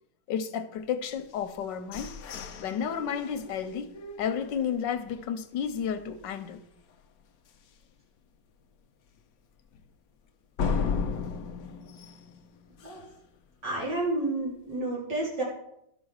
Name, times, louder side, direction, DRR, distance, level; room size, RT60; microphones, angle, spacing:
voice 1, 0.3-2.1 2.6-3.9 4.2-6.6, left 7 dB, 90° left, 1.5 m, -32 dB
sound 1, 1.3-5.2 5.6-5.7 6.1-6.5 6.9-7.0 7.5-7.6 10.6-13.2, left 5 dB, 65° left, 1.1 m, -35 dB
voice 2, 13.6-15.4, right 2 dB, 70° right, 4.5 m, -30 dB
11.5 x 6.4 x 6.3 m
omnidirectional pair, 1.9 m